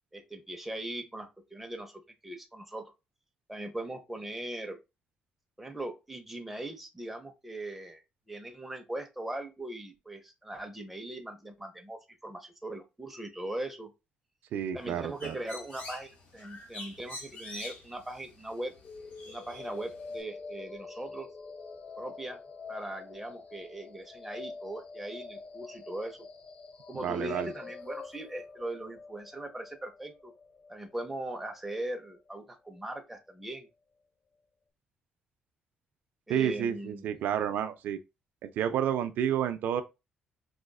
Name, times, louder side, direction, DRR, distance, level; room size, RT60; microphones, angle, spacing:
voice 1, 0.1-2.9 3.5-4.8 5.6-13.9 14.7-18.7 19.3-21.3 22.0-22.4 22.7-26.3 26.9-30.3 30.7-33.7 36.3-37.1, right 1 dB, 5° right, 0.6 m, -40 dB
voice 2, 14.5-15.4 26.9-27.5 36.3-38.0 38.4-39.8, right 9 dB, 75° right, 0.4 m, -30 dB
Bird, 14.8-20.2, left 1 dB, 60° left, 1.9 m, -47 dB
sound 1, 18.8-32.8, left 4 dB, 45° left, 0.4 m, -46 dB
4.8 x 2.4 x 2.3 m
cardioid pair, 145°, 3 cm